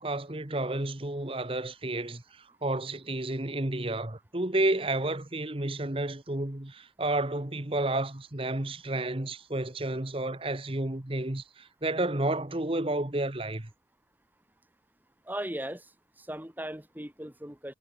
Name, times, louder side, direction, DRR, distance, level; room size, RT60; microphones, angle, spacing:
voice 1, 0.0-13.7, right 2 dB, 30° right, 1.3 m, -31 dB
voice 2, 15.3-15.9 16.2-17.7, right 1 dB, 10° right, 2.4 m, -37 dB
head